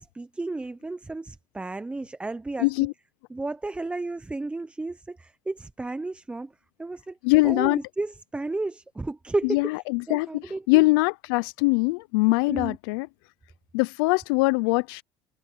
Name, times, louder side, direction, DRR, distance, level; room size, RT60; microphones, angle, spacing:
voice 1, 0.0-2.7 3.3-6.5 6.8-7.2 7.4-9.8 10.1-10.9 12.5-12.8, right 2 dB, 10° right, 0.7 m, -32 dB
voice 2, 2.6-2.9 7.2-7.8 9.5-13.1 13.7-15.0, left 24 dB, 85° left, 0.4 m, -22 dB
open air
supercardioid pair, 120°, 12 cm